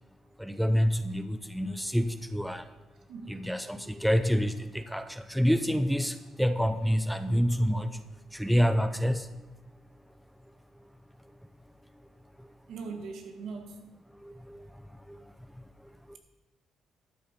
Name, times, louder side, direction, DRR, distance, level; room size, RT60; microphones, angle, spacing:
voice 1, 0.4-2.6 3.3-7.9 8.3-9.3 14.2-14.6 15.1-15.2 16.1-16.2, equal, ahead, 0.6 m, -27 dB
voice 2, 3.1-3.4 12.7-13.8, right 4 dB, 75° right, 1.6 m, -40 dB
13.0 x 8.3 x 4.4 m
cardioid pair, 90°, 0 cm